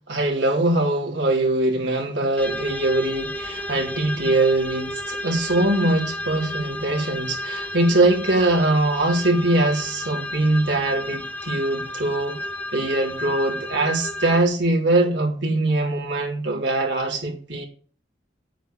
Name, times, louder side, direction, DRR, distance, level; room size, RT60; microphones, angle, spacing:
voice 1, 0.1-12.4 12.7-17.7, right 2 dB, 75° right, 3.8 m, -22 dB
sound 1, 2.4-14.4, left 1 dB, 10° left, 1.8 m, -32 dB
9.5 x 9.0 x 8.7 m
head